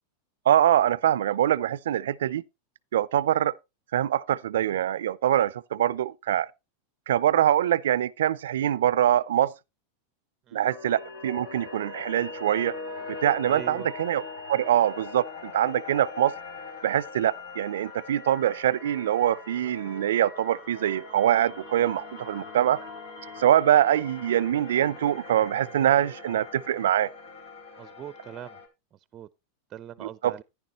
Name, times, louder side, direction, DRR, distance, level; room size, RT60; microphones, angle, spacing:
voice 1, 0.5-2.4 2.9-3.5 3.9-6.5 7.1-9.5 10.5-12.7 13.1-14.2 14.5-16.3 16.8-22.8 23.4-27.1 30.0-30.3, right 11 dB, 80° right, 0.4 m, -24 dB
sound 1, 10.6-28.7, left 3 dB, 80° left, 3.5 m, -41 dB
voice 2, 13.5-13.9 27.8-28.6 28.9-29.3 29.7-30.4, right 11 dB, 35° right, 0.5 m, -41 dB
10.5 x 9.9 x 3.0 m
hypercardioid pair, 115°, 0 cm